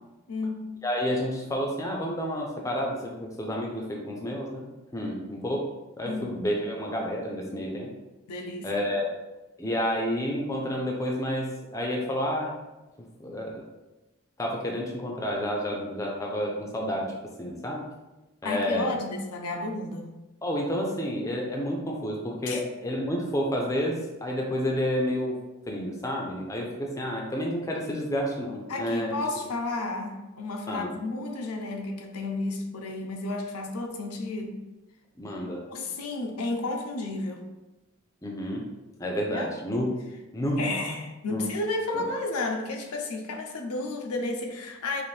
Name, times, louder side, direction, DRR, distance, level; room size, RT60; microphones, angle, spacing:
voice 1, 0.3-0.7 5.0-5.2 6.0-6.4 8.3-8.7 18.4-20.1 22.4-22.6 28.7-34.6 35.7-37.5 39.3-39.5 40.6-45.0, left 2 dB, 85° left, 3 dB, 0.5 m, -32 dB
voice 2, 0.8-4.7 4.9-5.6 6.0-7.9 8.6-9.1 9.6-12.5 13.2-13.6 14.4-17.8 18.4-18.9 20.4-25.4 25.7-29.2 30.7-31.0 35.2-35.6 38.2-38.7 39.0-39.8 40.3-40.7 41.3-41.5 41.9-42.1, equal, 15° left, -1 dB, 0.4 m, -30 dB
4.1 x 2.5 x 3.2 m, 1.1 s
head